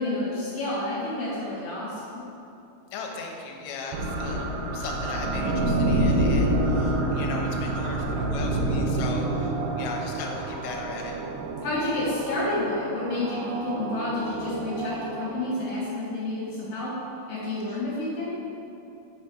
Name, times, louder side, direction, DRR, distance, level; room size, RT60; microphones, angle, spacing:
voice 1, 0.0-2.2 11.6-16.9 17.3-18.3, left 2 dB, 55° left, -9 dB, 2.3 m, -29 dB
voice 2, 2.9-4.5 4.7-11.2 17.7-17.8, left 4 dB, 75° left, 0 dB, 2.8 m, -37 dB
sound 1, 3.9-15.9, right 1 dB, 85° right, 2.5 m, -28 dB
6.9 x 5.6 x 4.7 m, 2.8 s
omnidirectional pair, 5.6 m